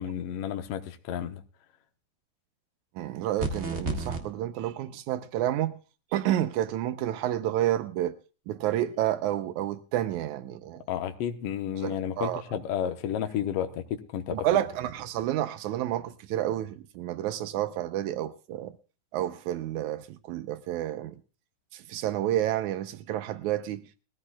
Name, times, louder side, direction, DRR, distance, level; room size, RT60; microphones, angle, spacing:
voice 1, 0.0-1.4 10.9-14.5, left 9 dB, 65° left, 1.9 m, -32 dB
voice 2, 3.0-5.8 6.1-8.2 8.5-10.8 11.8-12.4 14.3-18.7 19.1-21.2 21.7-24.0, right 12 dB, 85° right, 2.2 m, -30 dB
sound 1, 3.4-4.2, right 3 dB, 25° right, 1.6 m, -30 dB
21.5 x 14.5 x 2.3 m
omnidirectional pair, 3.3 m